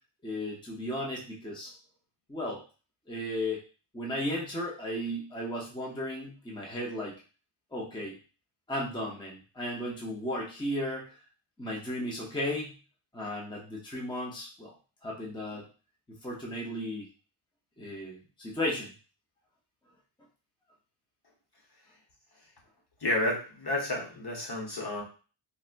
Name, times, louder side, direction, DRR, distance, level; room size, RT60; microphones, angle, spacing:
voice 1, 0.2-1.7 2.3-2.6 3.1-3.6 3.9-7.2 7.7-8.1 8.7-11.2 11.6-12.7 13.1-14.7 15.0-15.6 16.2-17.1 17.8-18.9, left 1 dB, 10° left, -3 dB, 0.8 m, -35 dB
voice 2, 23.0-25.0, left 1 dB, 50° left, -2 dB, 1.2 m, -31 dB
4.1 x 2.2 x 2.5 m, 0.36 s
wide cardioid pair, 85°, 50 cm